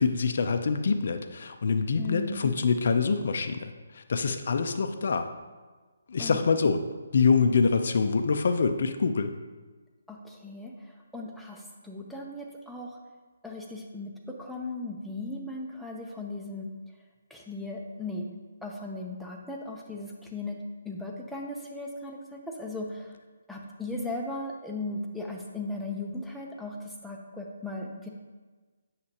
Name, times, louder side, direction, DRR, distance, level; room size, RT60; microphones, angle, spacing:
voice 1, 0.0-5.3 6.1-6.8 7.1-9.3, left 5 dB, 60° left, 7 dB, 0.6 m, -25 dB
voice 2, 2.0-2.5 6.2-6.4 10.1-13.0 13.4-16.7 17.3-18.3 18.6-20.6 20.8-23.2 23.5-28.1, left 2 dB, ahead, -2 dB, 0.8 m, -37 dB
8.2 x 6.6 x 2.9 m, 1.3 s
figure-of-eight pair, 150°, 0 cm